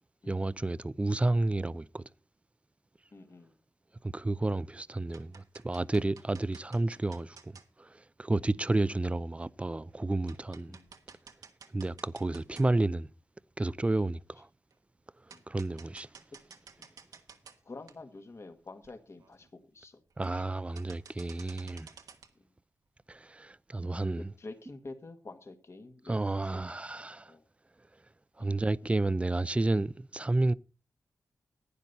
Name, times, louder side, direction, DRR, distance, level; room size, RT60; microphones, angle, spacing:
voice 1, 0.3-2.0 4.0-7.5 7.8-10.8 11.7-13.1 13.6-14.5 15.5-16.1 20.2-21.9 23.1-24.3 26.1-27.3 28.4-30.5, right 2 dB, 20° right, 0.5 m, -31 dB
voice 2, 3.1-3.6 8.4-8.6 10.7-10.9 11.7-12.0 15.3-15.4 16.8-16.9 17.6-20.0 20.3-20.5 24.2-26.2 27.3-27.4, left 3 dB, 50° left, 1.8 m, -48 dB
sound 1, 4.2-4.6 4.9-7.7 8.8-8.9 9.4-9.5 9.9-10.0 10.3-13.0 13.4-13.5 14.7-14.8 15.3-17.6 17.9-18.0 18.5-18.6 18.8-18.9 19.2-19.5 20.1-20.5 20.8-22.3, right 6 dB, 85° right, 1.3 m, -53 dB
11.5 x 9.6 x 4.1 m
cardioid pair, 65°, 6 cm